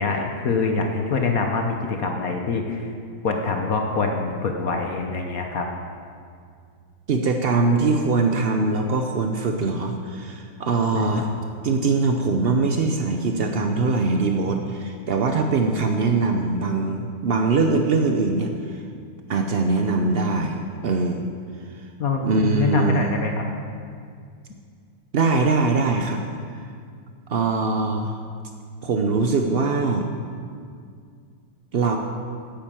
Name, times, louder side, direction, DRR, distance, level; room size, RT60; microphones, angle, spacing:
voice 1, 0.0-2.9 3.2-5.7 10.9-11.3 22.0-22.2 22.5-23.3, left 4 dB, 55° left, 3 dB, 1.2 m, -25 dB
voice 2, 7.1-11.3 11.6-18.8 19.3-21.3 21.7-21.8 22.2-23.2 25.1-26.2 26.6-26.7 27.3-28.2 28.8-30.1 31.7-32.0, right 3 dB, 75° right, 4 dB, 0.5 m, -22 dB
10.0 x 8.8 x 7.5 m, 2.2 s
omnidirectional pair, 2.0 m